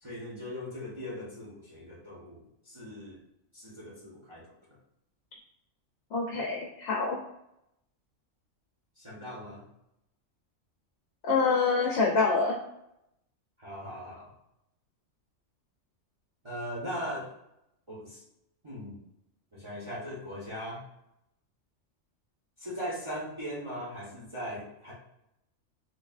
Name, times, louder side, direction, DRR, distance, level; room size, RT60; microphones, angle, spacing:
voice 1, 0.0-3.2 3.5-4.4 9.0-9.6 13.6-14.3 16.4-17.3 17.9-18.2 18.6-19.0 19.5-20.8 22.6-24.9, equal, 25° right, -7 dB, 1.0 m, -39 dB
voice 2, 6.1-7.2 11.2-12.6, left 4 dB, 65° left, -2 dB, 0.8 m, -26 dB
4.0 x 3.1 x 2.4 m, 0.82 s
omnidirectional pair, 1.3 m